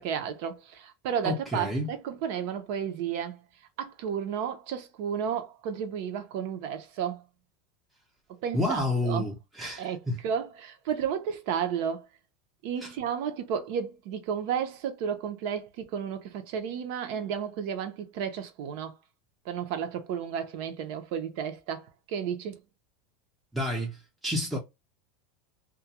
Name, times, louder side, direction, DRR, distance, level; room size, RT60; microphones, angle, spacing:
voice 1, 0.0-3.4 3.8-7.2 8.4-9.3 9.8-10.0 10.2-12.1 12.6-18.9 19.5-21.8 22.1-22.5, right 8 dB, 50° right, 0.6 m, -32 dB
voice 2, 1.2-1.9 8.5-10.2 12.8-12.9 23.5-24.6, left 1 dB, ahead, 0.7 m, -30 dB
2.3 x 2.2 x 2.8 m
supercardioid pair, 175°, 0 cm